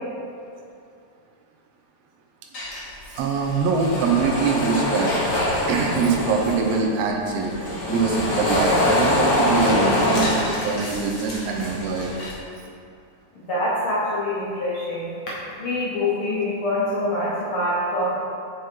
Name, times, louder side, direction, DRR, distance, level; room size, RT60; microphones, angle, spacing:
sound 1, 2.5-6.8 7.3-12.3, left 1 dB, 85° left, 0.7 m, -24 dB
voice 1, 3.2-5.1 5.7-7.5 7.9-12.1 16.0-16.1, right 5 dB, 75° right, 1 dB, 1.6 m, -23 dB
voice 2, 13.4-15.1 15.6-18.2, left 1 dB, 65° left, -8 dB, 1.3 m, -25 dB
5.0 x 4.9 x 4.4 m, 2.5 s
omnidirectional pair, 3.4 m